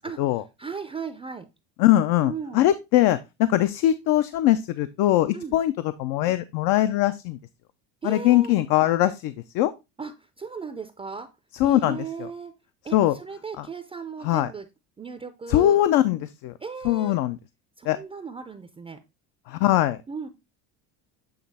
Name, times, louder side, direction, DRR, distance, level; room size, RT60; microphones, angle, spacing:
voice 1, 0.0-1.5 2.2-2.7 5.3-5.6 8.0-8.5 10.0-11.3 11.6-12.5 12.8-14.7 15.0-15.8 16.6-17.2 17.8-19.0 20.1-20.3, right 5 dB, 15° right, 8 dB, 0.4 m, -36 dB
voice 2, 1.8-5.7 6.0-7.4 8.0-9.7 11.6-12.0 12.9-13.1 13.6-13.7 14.2-14.5 15.5-16.5 16.8-17.4 17.9-18.0 19.5-20.0, left 14 dB, 70° left, 12 dB, 0.6 m, -21 dB
8.2 x 3.1 x 4.1 m, 0.24 s
cardioid pair, 120°, 38 cm